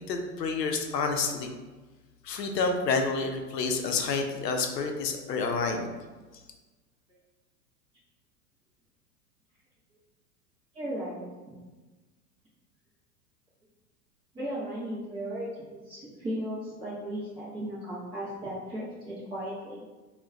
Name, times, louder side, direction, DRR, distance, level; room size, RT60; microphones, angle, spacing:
voice 1, 0.0-1.6 2.2-5.9 6.3-6.4, left 4 dB, 75° left, 4 dB, 0.6 m, -29 dB
voice 2, 10.7-11.3 14.3-19.8, right 1 dB, 10° right, -9 dB, 0.4 m, -36 dB
2.2 x 2.2 x 3.7 m, 1.3 s
figure-of-eight pair, 95°, 50 cm